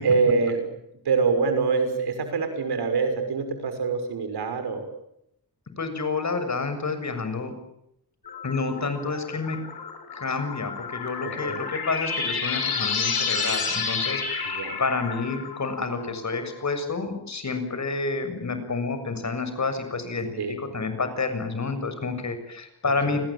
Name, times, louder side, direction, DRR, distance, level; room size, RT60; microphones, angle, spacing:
voice 1, 0.0-0.6 1.0-4.9 11.2-11.5 14.5-14.8 20.4-20.5 23.0-23.1, right 4 dB, 85° right, 8 dB, 6.3 m, -25 dB
voice 2, 5.8-7.5 8.4-9.6 10.2-23.2, left 4 dB, 45° left, 9 dB, 7.2 m, -29 dB
sound 1, 8.2-16.4, left 5 dB, 70° left, 6.7 m, -30 dB
29.5 x 21.0 x 8.9 m, 0.79 s
wide cardioid pair, 110°, 38 cm